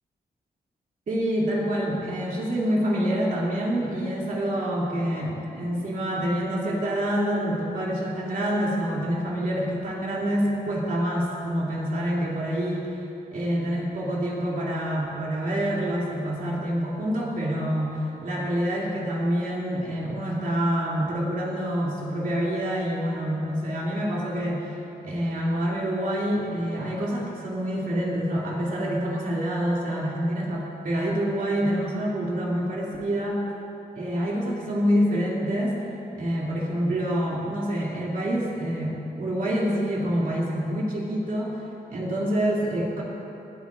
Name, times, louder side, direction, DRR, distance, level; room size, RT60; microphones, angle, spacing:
voice 1, 1.1-12.9 13.3-24.7 25.0-33.4 34.0-35.8 36.2-41.5 41.9-43.0, equal, 60° right, -5 dB, 2.8 m, -27 dB
19.5 x 12.5 x 2.5 m, 2.9 s
wide cardioid pair, 135°, 16 cm